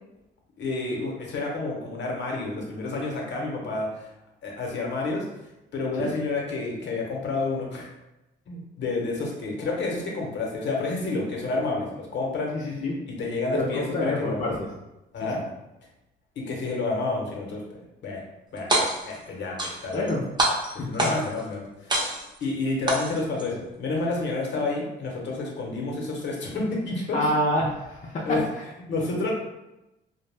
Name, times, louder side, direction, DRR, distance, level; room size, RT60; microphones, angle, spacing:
voice 1, 0.6-4.1 4.4-5.2 5.7-7.9 8.5-12.5 13.1-14.5 15.1-15.4 16.4-17.6 18.0-18.2 18.5-18.7 19.0-20.1 20.7-22.1 22.4-27.2 28.3-28.4 28.9-29.3, left 3 dB, 65° left, -1 dB, 0.8 m, -29 dB
voice 2, 12.5-13.0 13.5-14.6 19.9-20.2 20.6-20.8 27.1-28.3, left 1 dB, 40° left, -4 dB, 0.5 m, -27 dB
sound 1, 18.6-19.2 19.6-20.1 20.4-21.4 21.9-22.4 22.9-23.4, right 1 dB, 20° right, 0.6 m, -25 dB
2.3 x 2.1 x 3.3 m, 0.96 s
cardioid pair, 90°, 20 cm